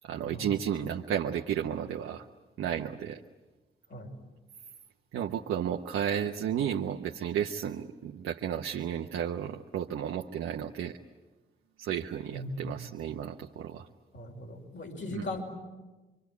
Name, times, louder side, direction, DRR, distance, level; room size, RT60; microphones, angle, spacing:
voice 1, 0.0-2.3 2.6-3.2 5.1-11.0 11.8-13.9 15.1-15.2, right 9 dB, 85° right, 2 dB, 0.9 m, -33 dB
voice 2, 12.3-12.8 14.1-15.4, left 1 dB, 65° left, 1 dB, 5.8 m, -38 dB
26.0 x 24.5 x 9.4 m, 1.2 s
supercardioid pair, 45°, 21 cm